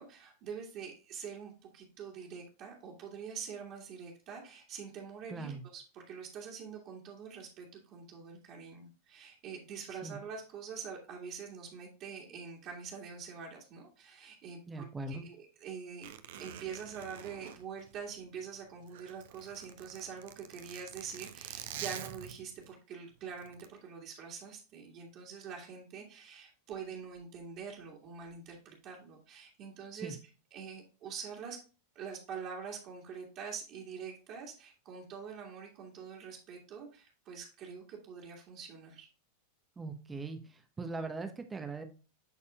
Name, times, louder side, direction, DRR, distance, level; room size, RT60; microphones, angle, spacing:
voice 1, 0.0-16.1 16.3-30.2 30.5-31.6 32.0-39.1, right 6 dB, 35° right, -2 dB, 1.9 m, -45 dB
voice 2, 5.3-5.6 10.0-10.2 14.7-15.3 30.0-30.1 39.8-40.4 40.8-41.8, right 3 dB, 15° right, 6 dB, 0.9 m, -40 dB
Zipper (clothing), 16.0-18.4 18.8-22.7 23.4-23.7, right 11 dB, 55° right, 0.7 m, -46 dB
11.0 x 4.2 x 2.3 m, 0.33 s
figure-of-eight pair, 90°, 0 cm